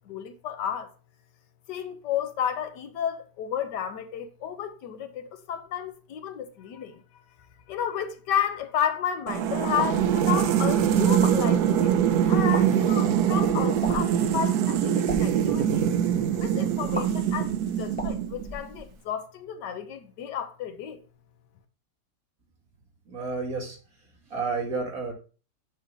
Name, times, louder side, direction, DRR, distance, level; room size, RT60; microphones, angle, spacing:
voice 1, 0.1-0.9 1.7-7.0 7.7-12.0 12.3-15.9 16.4-21.0, left 9 dB, 80° left, 1.4 m, -32 dB
sound 1, 9.3-18.6, right 9 dB, 75° right, 1.1 m, -23 dB
sound 2, 9.8-10.1 11.1-11.4 12.4-12.6 13.8-14.2 14.9-15.2 16.9-17.0 17.9-19.1, left 1 dB, 15° left, 0.3 m, -35 dB
voice 2, 23.1-23.8 24.3-25.1, right 4 dB, 55° right, 2.1 m, -30 dB
7.7 x 2.9 x 5.0 m
omnidirectional pair, 1.8 m